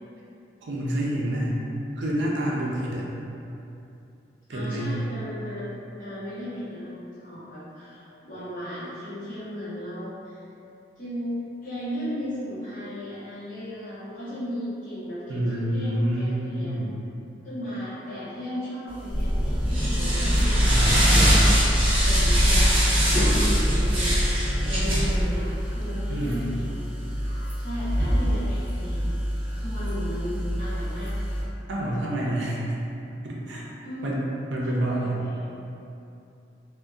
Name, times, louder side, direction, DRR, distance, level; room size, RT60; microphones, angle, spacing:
voice 1, 0.6-1.6 2.0-3.1 4.5-5.0 15.3-16.9 20.6-21.3 26.1-26.4 31.7-32.6 33.2-33.6 34.0-34.2 34.5-35.2, right 1 dB, 75° right, -4 dB, 0.4 m, -28 dB
voice 2, 4.5-10.4 11.0-16.7 17.4-20.6 21.2-21.6 22.0-22.7 23.1-26.8 27.6-29.1 29.5-31.1 33.8-34.1 34.6-35.5, equal, 45° left, -13 dB, 0.8 m, -35 dB
sound 1, 19.0-31.4, equal, 30° right, 0.7 m, -23 dB
sound 2, 19.1-25.2, equal, 5° right, 1.2 m, -26 dB
2.5 x 2.1 x 2.3 m, 2.7 s
head